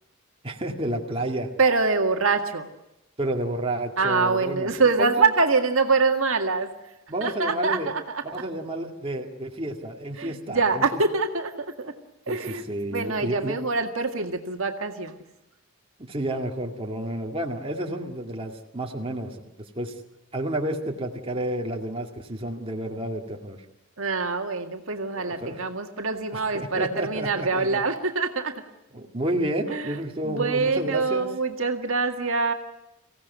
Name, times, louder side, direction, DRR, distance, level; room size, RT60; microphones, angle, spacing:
voice 1, 0.4-1.5 3.2-4.7 5.0-5.3 7.1-7.9 8.3-11.0 12.3-12.4 12.7-13.6 16.0-19.4 19.8-19.9 20.3-23.6 25.2-25.6 26.3-27.8 28.9-31.3, right 1 dB, 25° right, 1 dB, 2.1 m, -30 dB
voice 2, 1.6-2.7 4.0-6.7 7.2-8.2 10.2-11.9 12.3-12.6 12.9-15.1 24.0-28.5 29.7-32.5, right 4 dB, 65° right, 4 dB, 1.9 m, -25 dB
24.5 x 16.5 x 9.4 m, 0.93 s
head